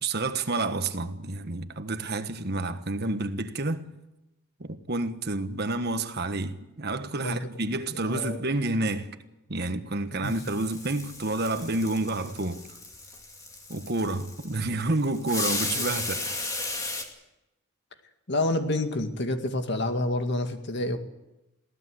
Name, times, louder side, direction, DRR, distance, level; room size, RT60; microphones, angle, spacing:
voice 1, 0.0-3.8 4.6-9.2 9.5-12.6 13.7-16.5, right 2 dB, 50° right, 1.4 m, -29 dB
voice 2, 8.0-8.4 10.2-10.3 15.8-15.9 18.3-21.0, left 2 dB, 50° left, 2.1 m, -28 dB
sound 1, 10.2-17.0, left 2 dB, 15° left, 2.5 m, -35 dB
23.0 x 17.0 x 7.9 m
head